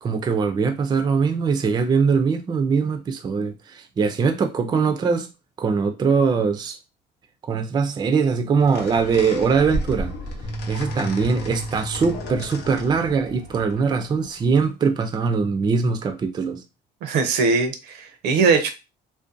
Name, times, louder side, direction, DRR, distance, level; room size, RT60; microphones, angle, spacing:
voice 1, 0.0-5.3 5.6-6.8 7.4-10.1 10.7-16.6, right 5 dB, 25° right, 0.4 m, -22 dB
sound 1, 8.6-14.6, left 1 dB, 80° left, 0.7 m, -34 dB
sound 2, 10.4-12.9, right 2 dB, 25° left, 0.7 m, -33 dB
voice 2, 17.0-18.7, right 4 dB, 80° right, 0.6 m, -20 dB
2.6 x 2.2 x 2.5 m
cardioid pair, 110°, 17 cm